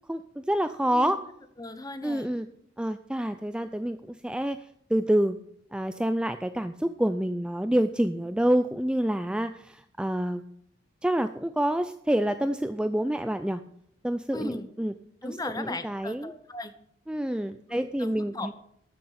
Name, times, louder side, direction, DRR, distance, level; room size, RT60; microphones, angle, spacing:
voice 1, 0.1-1.2 2.0-2.5 2.8-4.6 4.9-5.4 5.7-10.4 11.0-13.6 14.0-14.9 15.2-16.3 17.1-18.5, right 1 dB, 5° right, 10 dB, 0.4 m, -27 dB
voice 2, 1.6-2.3 14.3-14.7 15.2-16.7 17.7-18.5, left 2 dB, 20° left, 10 dB, 0.9 m, -37 dB
13.0 x 6.7 x 5.8 m, 0.70 s
head